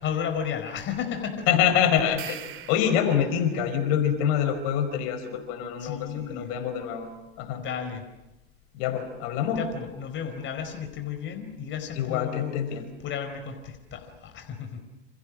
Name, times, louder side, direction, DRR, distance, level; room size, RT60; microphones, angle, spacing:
voice 1, 0.0-1.5 5.8-6.5 7.6-8.0 9.6-12.6 13.0-14.8, left 8 dB, 35° left, 6 dB, 4.7 m, -33 dB
voice 2, 1.5-7.6 8.7-9.7 11.9-12.9, left 9 dB, 60° left, 9 dB, 5.0 m, -26 dB
sound 1, 2.0-3.6, right 12 dB, 40° right, 2.9 m, -42 dB
29.5 x 28.5 x 6.3 m, 0.95 s
supercardioid pair, 110°, 32 cm